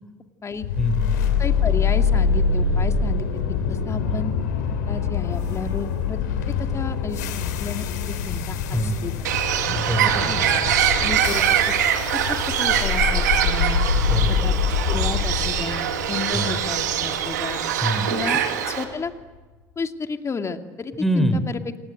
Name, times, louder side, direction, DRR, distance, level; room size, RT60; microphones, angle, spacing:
sound 1, 0.6-18.7, left 6 dB, 85° left, 3.3 m, -25 dB
voice 1, 0.8-1.2 4.0-4.2 8.7-9.0 9.7-10.7 13.9-14.5 16.3-16.6 17.8-18.1 21.0-21.5, equal, 5° left, 9 dB, 4.0 m, -25 dB
voice 2, 1.4-3.3 3.7-4.3 4.9-6.2 6.6-7.2 7.6-9.1 10.0-10.4 11.0-11.5 12.6-13.8 14.4-14.5 14.9-17.6 18.1-18.4 18.7-19.1 19.8-21.6, left 5 dB, 30° left, 6 dB, 2.5 m, -32 dB
Bird, 9.2-18.8, right 9 dB, 90° right, 2.5 m, -23 dB
27.5 x 19.0 x 9.2 m, 1.3 s
hypercardioid pair, 70°, 9 cm